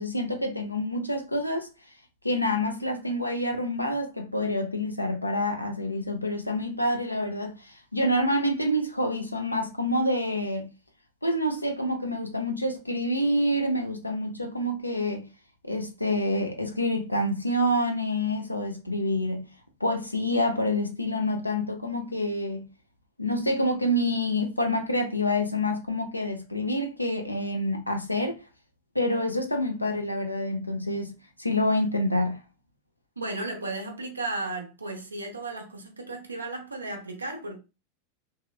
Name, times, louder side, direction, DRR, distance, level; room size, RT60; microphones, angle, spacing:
voice 1, 0.0-1.7 2.2-10.7 11.2-15.2 15.6-19.4 19.8-22.6 23.2-28.4 28.9-31.1 31.4-32.4, left 1 dB, 85° left, 0.6 m, -27 dB
voice 2, 33.2-37.6, right 2 dB, 80° right, 0.7 m, -34 dB
2.9 x 2.9 x 2.3 m
figure-of-eight pair, 90°, 0 cm